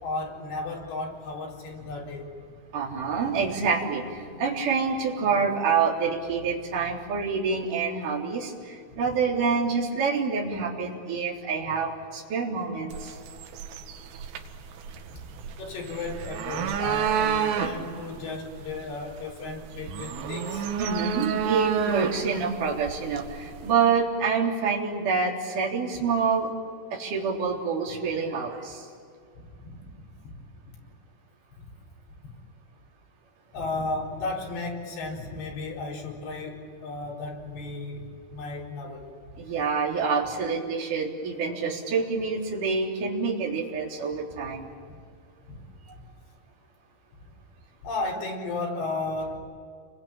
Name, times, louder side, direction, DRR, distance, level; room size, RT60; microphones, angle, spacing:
voice 1, 0.0-2.3 8.9-9.0 13.1-13.4 14.4-14.5 15.6-20.6 29.4-29.9 30.2-30.4 31.6-31.7 33.5-39.1 45.5-45.6 46.0-46.1 47.2-47.3 47.8-49.4, left 3 dB, 60° left, -2 dB, 6.5 m, -34 dB
voice 2, 2.7-13.2 20.8-26.5 26.9-28.9 39.4-44.7, right 5 dB, 45° right, -3 dB, 4.7 m, -27 dB
sound 1, 12.9-23.7, right 8 dB, 90° right, 4.2 m, -31 dB
30.0 x 22.5 x 8.9 m, 2.2 s
omnidirectional pair, 5.8 m